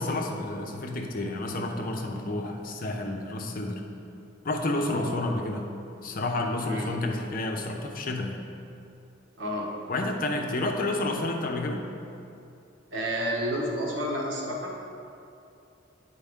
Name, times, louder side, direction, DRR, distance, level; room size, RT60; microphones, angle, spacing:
voice 1, 0.0-3.8 4.4-5.7 6.0-8.4 9.9-11.8, left 2 dB, 50° left, 2 dB, 0.7 m, -30 dB
voice 2, 9.4-9.7 12.9-14.7, equal, 80° right, -2 dB, 1.2 m, -30 dB
8.6 x 4.6 x 3.5 m, 2.6 s
head